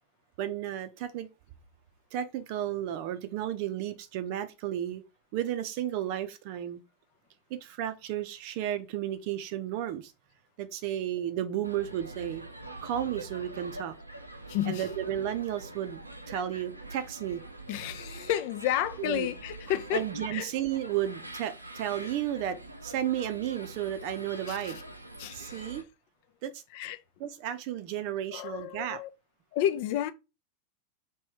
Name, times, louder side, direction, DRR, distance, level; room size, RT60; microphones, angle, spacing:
voice 1, 0.4-1.3 2.1-5.0 5.3-6.8 7.5-10.1 10.6-12.4 12.8-13.9 14.7-16.0 16.3-17.4 19.0-19.3 19.9-22.6 22.8-24.8 25.3-25.8 26.4-26.5 27.2-29.0, right 11 dB, 45° right, 0.6 m, -33 dB
sound 1, 11.6-25.8, right 2 dB, 85° right, 0.6 m, -44 dB
voice 2, 14.5-14.8 17.7-20.5 24.5-24.7 25.2-25.7 26.7-27.0 28.3-29.1 29.5-30.1, left 11 dB, 50° left, 0.5 m, -31 dB
3.0 x 3.0 x 4.6 m
figure-of-eight pair, 90°, 0 cm